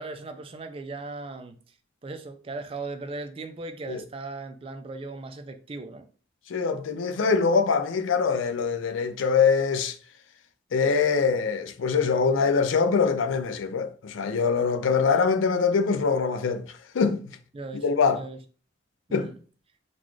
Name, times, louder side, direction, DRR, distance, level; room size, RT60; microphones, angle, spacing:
voice 1, 0.0-1.6 2.0-6.1 17.5-17.8 18.1-18.4 19.1-19.3, right 3 dB, 30° right, 0.3 m, -37 dB
voice 2, 6.5-10.0 10.7-16.6 16.9-17.2 17.8-18.2 19.1-19.3, left 5 dB, 80° left, 0.4 m, -23 dB
3.9 x 2.4 x 3.1 m
head